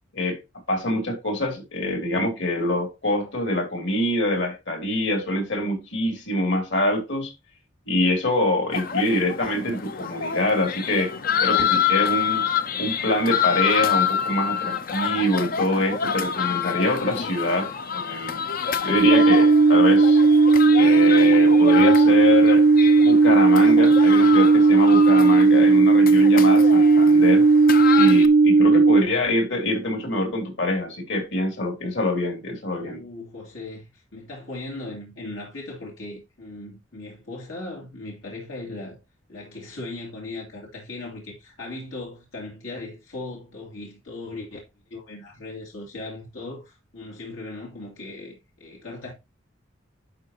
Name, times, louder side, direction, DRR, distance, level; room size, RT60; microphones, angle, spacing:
voice 1, 0.7-7.3 7.9-11.1 11.4-12.5 12.8-18.4 18.8-20.2 20.8-22.7 23.0-27.4 27.9-33.0, left 1 dB, 60° left, 3.0 m, -25 dB
sound 1, 8.7-28.3, left 8 dB, 45° left, 0.6 m, -27 dB
sound 2, 19.0-29.0, right 3 dB, 40° right, 0.4 m, -15 dB
voice 2, 32.8-39.0 39.3-44.6 44.9-49.1, left 2 dB, 80° left, 2.7 m, -38 dB
11.0 x 4.8 x 2.9 m
head